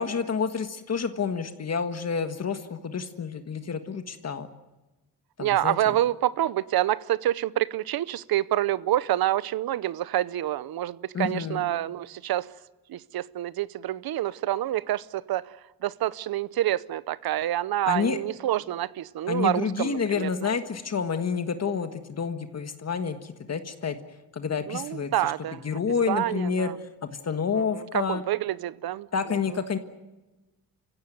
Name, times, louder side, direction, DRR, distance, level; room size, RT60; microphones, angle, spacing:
voice 1, 0.0-4.5 5.4-6.0 11.1-11.6 17.8-18.2 19.3-24.0 24.3-25.3 25.6-28.2 29.1-29.8, left 6 dB, 45° left, 1.6 m, -29 dB
voice 2, 5.4-12.5 12.9-15.5 15.8-20.5 24.7-25.6 26.1-26.7 27.5-29.1, right 13 dB, 80° right, 0.8 m, -27 dB
28.5 x 16.0 x 9.4 m
cardioid pair, 105°, 36 cm